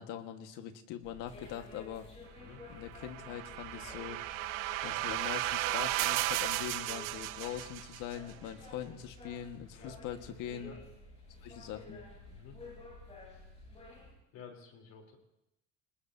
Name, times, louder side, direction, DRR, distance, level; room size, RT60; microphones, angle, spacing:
voice 1, 0.0-2.1 2.7-4.2 4.8-10.7 11.4-12.0, left 10 dB, 90° left, 7 dB, 1.6 m, -42 dB
sound 1, 1.0-14.1, left 2 dB, 20° left, 7.4 m, -51 dB
sound 2, 2.9-8.2, right 17 dB, 90° right, 0.6 m, -35 dB
voice 2, 12.3-12.6 14.3-15.2, left 6 dB, 60° left, 2 dB, 3.6 m, -52 dB
27.0 x 19.5 x 2.8 m, 0.87 s
cardioid pair, 170°, 31 cm